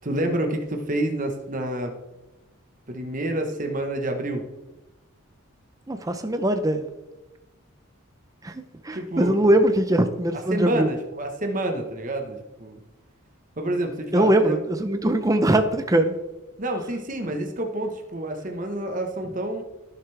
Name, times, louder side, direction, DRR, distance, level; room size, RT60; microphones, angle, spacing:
voice 1, 0.0-1.9 2.9-4.5 8.9-9.4 10.5-12.8 13.6-14.6 16.6-19.6, right 1 dB, 40° right, 4 dB, 1.2 m, -28 dB
voice 2, 5.9-6.9 8.4-10.9 14.1-16.1, right 1 dB, 15° right, 8 dB, 0.6 m, -21 dB
16.5 x 7.0 x 3.4 m, 1.1 s
head